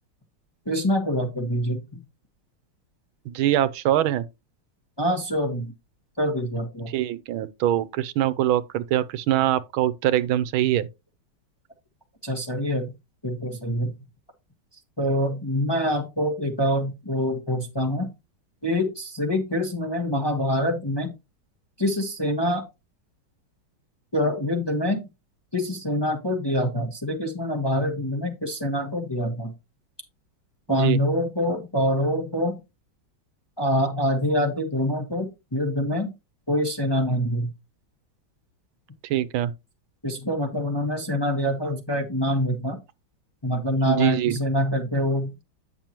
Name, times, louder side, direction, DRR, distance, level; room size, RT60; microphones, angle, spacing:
voice 1, 0.7-2.0 5.0-5.7 6.2-6.9 12.2-12.9 13.2-13.9 15.0-18.1 18.6-21.1 21.8-22.6 24.1-25.0 25.5-29.5 30.7-32.6 33.6-36.1 36.5-37.5 40.0-42.8 43.4-45.4, equal, 15° left, 1.0 m, -25 dB
voice 2, 3.3-4.2 6.9-10.9 30.7-31.0 39.0-39.5 43.9-44.4, right 12 dB, 80° right, 1.5 m, -23 dB
8.9 x 6.8 x 3.0 m
omnidirectional pair, 2.2 m